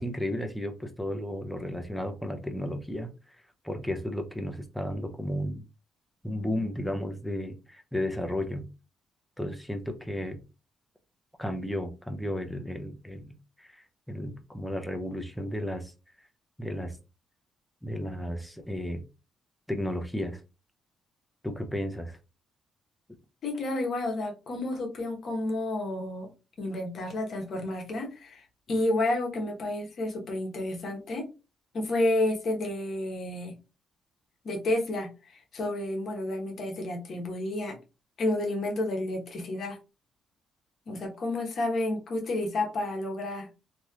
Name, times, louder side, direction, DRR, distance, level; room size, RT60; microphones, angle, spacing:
voice 1, 0.0-3.1 3.6-5.6 6.2-8.7 9.4-10.4 11.4-15.9 16.6-17.0 17.8-19.0 19.7-20.4 21.4-22.2, left 1 dB, 5° left, 5 dB, 0.6 m, -33 dB
voice 2, 23.4-26.3 26.6-31.2 31.7-33.5 34.4-37.8 38.2-39.8 40.9-43.5, left 1 dB, 55° left, 2 dB, 1.1 m, -30 dB
3.1 x 2.8 x 2.4 m, 0.29 s
cardioid pair, 90°, 0 cm